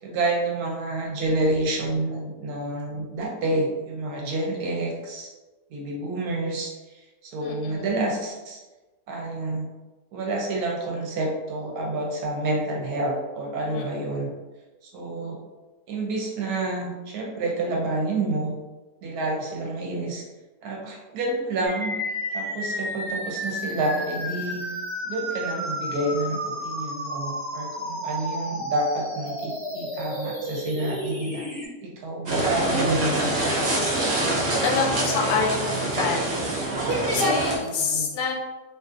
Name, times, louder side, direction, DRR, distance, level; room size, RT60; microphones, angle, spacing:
voice 1, 0.0-5.3 5.7-8.6 9.1-9.7 10.1-14.3 14.8-15.4 15.9-18.5 19.0-20.2 20.6-21.9 22.3-24.6 25.0-31.4 31.8-33.9 37.6-38.2, right 2 dB, 70° right, -1 dB, 1.0 m, -29 dB
voice 2, 7.4-7.9 13.7-13.9 34.6-36.3 37.1-38.3, left 5 dB, 85° left, -1 dB, 1.2 m, -27 dB
sound 1, 21.7-31.7, equal, 20° left, 0.6 m, -32 dB
sound 2, 32.3-37.6, right 1 dB, 55° right, 0.7 m, -25 dB
2.5 x 2.5 x 2.4 m, 1.2 s
omnidirectional pair, 1.8 m